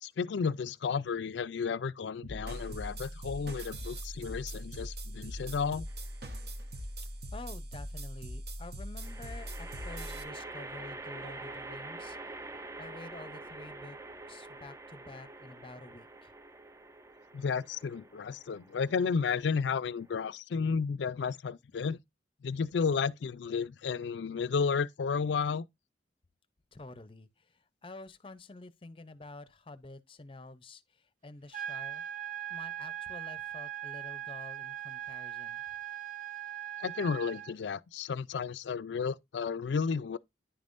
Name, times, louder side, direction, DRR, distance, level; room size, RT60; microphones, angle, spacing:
voice 1, 0.0-5.8 17.3-22.0 22.4-25.6 36.8-40.2, left 5 dB, 75° left, 0.4 m, -32 dB
sound 1, 2.2-10.2, equal, 60° right, 1.1 m, -41 dB
sound 2, 5.9-6.5 9.0-20.3, right 2 dB, 15° right, 0.4 m, -46 dB
voice 2, 7.3-12.4 12.8-14.0 14.3-16.3 26.7-32.0 32.5-35.6, left 2 dB, 30° left, 0.6 m, -49 dB
sound 3, 31.5-37.5, right 11 dB, 45° right, 0.8 m, -40 dB
10.0 x 5.3 x 2.5 m
head